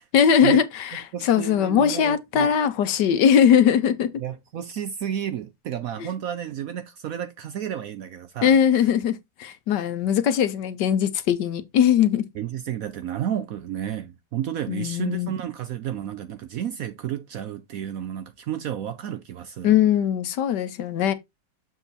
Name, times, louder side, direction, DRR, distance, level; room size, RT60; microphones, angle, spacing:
voice 1, 0.1-4.1 8.4-12.2 14.7-15.3 19.6-21.1, left 8 dB, 70° left, 1.4 m, -20 dB
voice 2, 1.1-2.5 4.2-8.6 12.3-19.8, right 10 dB, 65° right, 0.9 m, -31 dB
7.0 x 3.8 x 4.1 m
omnidirectional pair, 1.9 m